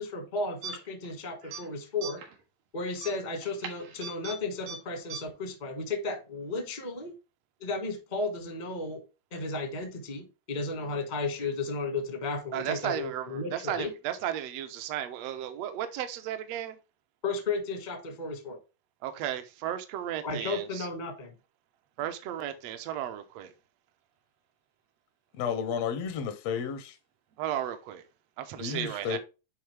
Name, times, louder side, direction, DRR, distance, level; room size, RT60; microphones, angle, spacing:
voice 1, 0.0-2.2 2.7-7.1 7.6-9.0 9.3-13.9 17.2-18.6 20.2-21.3, left 3 dB, 30° left, 0.8 m, -34 dB
sound 1, 0.6-1.1 1.4-1.6 2.0-2.4 3.0-4.4 4.7-4.8 5.1-5.2, right 5 dB, 90° right, 3.3 m, -39 dB
voice 2, 12.5-16.8 19.0-20.9 22.0-23.5 27.4-28.0 28.4-29.2, right 11 dB, 70° right, 1.6 m, -34 dB
voice 3, 25.3-27.0 28.6-29.2, left 7 dB, 70° left, 1.6 m, -32 dB
10.5 x 3.8 x 3.3 m
omnidirectional pair, 3.8 m